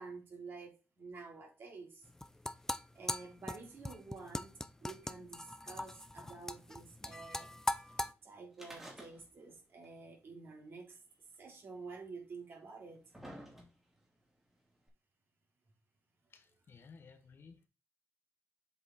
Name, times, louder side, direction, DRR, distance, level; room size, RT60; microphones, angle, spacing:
voice 1, 0.0-2.1 2.9-7.6 8.2-11.0 11.4-13.0, right 4 dB, 50° right, 3.6 m, -50 dB
sound 1, 2.0-8.1, left 1 dB, 10° left, 0.6 m, -40 dB
sound 2, 8.5-9.6 9.8-9.9 10.9-11.0 11.9-12.0 12.7-14.0 14.9-15.0, right 1 dB, 10° right, 3.0 m, -51 dB
voice 2, 16.3-17.7, left 5 dB, 50° left, 1.3 m, -57 dB
7.8 x 4.9 x 4.2 m
cardioid pair, 105°, 5 cm